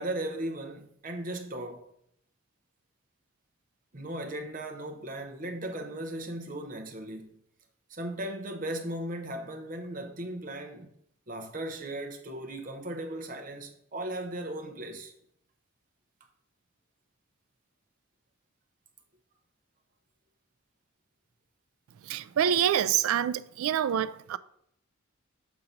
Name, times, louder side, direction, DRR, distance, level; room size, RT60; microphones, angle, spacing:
voice 1, 0.0-1.9 3.9-7.3 7.9-10.9 11.3-15.1, right 1 dB, 40° right, 0.8 m, -37 dB
voice 2, 21.9-24.4, right 9 dB, 85° right, 0.3 m, -27 dB
7.1 x 2.9 x 5.1 m
head